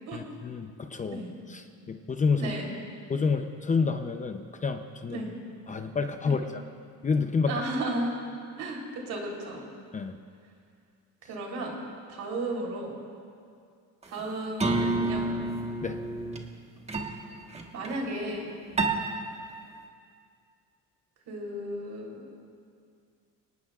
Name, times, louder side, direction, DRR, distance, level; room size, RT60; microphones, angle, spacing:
voice 1, 0.1-1.2 1.9-2.5 3.1-5.2 5.7-6.6 7.0-7.5 9.9-10.1 15.8-16.0, left 5 dB, 25° left, 7 dB, 0.7 m, -28 dB
voice 2, 2.4-2.7 5.1-5.3 6.2-6.4 7.5-8.1 8.6-9.7 11.2-11.7 12.1-13.0 14.1-15.3 17.7-18.5 21.3-22.3, right 1 dB, 65° right, -1 dB, 3.7 m, -34 dB
sound 1, 14.2-14.3 14.6-16.6 16.9-17.2 17.5-17.9 18.8-19.3, right 2 dB, 20° right, 1.4 m, -29 dB
24.0 x 19.0 x 2.5 m, 2.3 s
cardioid pair, 125°, 33 cm